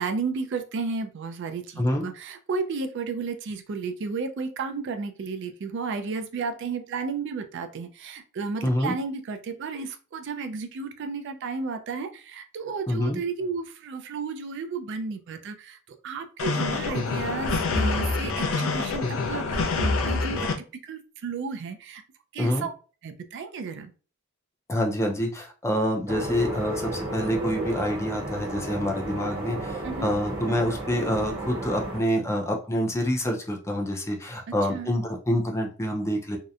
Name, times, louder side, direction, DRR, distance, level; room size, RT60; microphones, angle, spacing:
voice 1, 0.0-15.8 16.0-20.5 20.8-22.0 22.3-22.7 23.0-23.9 29.8-30.1 34.7-34.9, right 4 dB, 60° right, 7 dB, 0.4 m, -33 dB
voice 2, 8.6-8.9 12.9-13.2 22.4-22.6 24.7-36.4, equal, 15° left, 2 dB, 0.4 m, -27 dB
sound 1, 16.4-20.5, left 3 dB, 70° left, 0.5 m, -26 dB
sound 2, 26.1-32.0, right 1 dB, 25° right, 0.7 m, -33 dB
2.7 x 2.1 x 2.4 m, 0.36 s
head